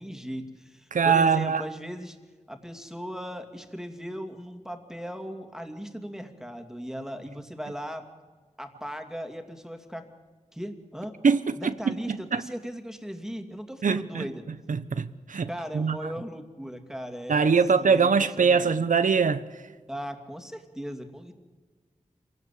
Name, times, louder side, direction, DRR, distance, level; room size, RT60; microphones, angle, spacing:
voice 1, 0.0-2.2 2.5-8.1 8.6-10.1 10.5-11.1 11.6-14.5 15.5-18.7 19.9-21.3, equal, 5° right, 2.6 m, -38 dB
voice 2, 0.9-1.6 11.2-12.4 13.8-15.5 15.7-16.1 17.3-19.6, right 5 dB, 80° right, 0.9 m, -23 dB
26.0 x 17.5 x 8.5 m
wide cardioid pair, 70°, 13 cm